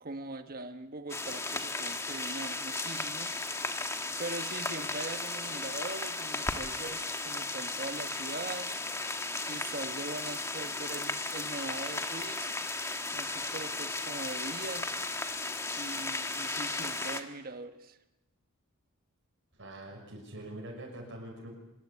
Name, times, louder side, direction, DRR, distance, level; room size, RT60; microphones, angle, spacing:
voice 1, 0.0-3.3 4.2-8.7 9.4-12.5 13.1-14.9 15.8-18.0, right 3 dB, 45° right, 8 dB, 1.3 m, -41 dB
sound 1, 1.1-17.2, left 3 dB, 15° left, 1.5 m, -35 dB
voice 2, 19.6-21.5, right 1 dB, 60° right, -1 dB, 5.9 m, -44 dB
25.0 x 21.0 x 8.5 m, 0.96 s
head